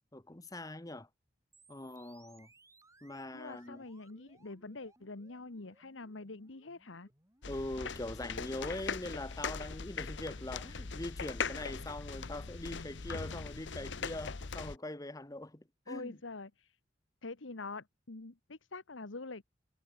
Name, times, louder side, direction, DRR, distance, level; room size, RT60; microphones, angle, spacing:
voice 1, 0.1-1.1 1.7-2.5 3.0-3.8 7.5-16.1, left 1 dB, 20° left, 1.1 m, -42 dB
sound 1, 1.5-11.5, right 3 dB, 15° right, 4.6 m, -67 dB
voice 2, 3.3-7.1 13.6-13.8 15.9-16.8 17.2-19.4, left 3 dB, 90° left, 1.4 m, -45 dB
sound 2, 7.4-14.8, left 5 dB, 70° left, 0.9 m, -40 dB
head